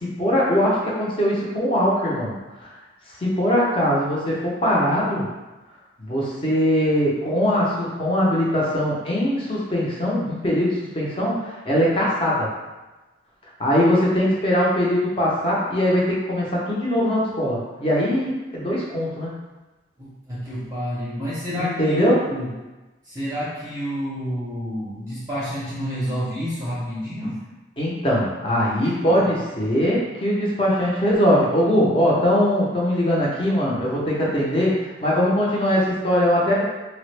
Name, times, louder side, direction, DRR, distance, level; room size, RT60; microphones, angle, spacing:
voice 1, 0.0-2.3 2.6-2.7 3.1-5.3 6.0-12.5 13.6-19.3 21.5-22.2 27.8-36.6, equal, 30° left, -5 dB, 0.6 m, -21 dB
voice 2, 20.0-22.5 23.1-27.4 29.0-29.2, equal, 20° right, -9 dB, 0.6 m, -29 dB
3.3 x 2.0 x 3.2 m, 1.1 s
head